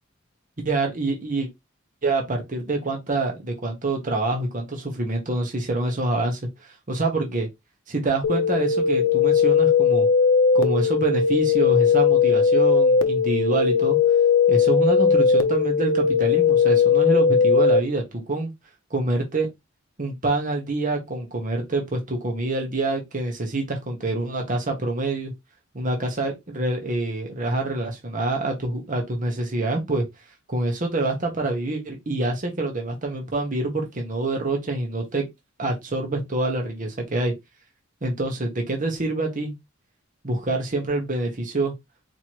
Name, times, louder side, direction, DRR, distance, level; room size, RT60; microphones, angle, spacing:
voice 1, 0.6-1.5 2.0-7.5 7.9-10.1 10.5-14.0 14.5-18.5 18.9-19.5 20.0-25.3 25.7-30.0 30.5-35.3 35.6-37.3 38.0-39.5 40.2-41.7, right 2 dB, 40° right, 1.1 m, -26 dB
sound 1, 8.2-17.8, left 6 dB, 70° left, 0.6 m, -19 dB
4.4 x 3.0 x 3.0 m
head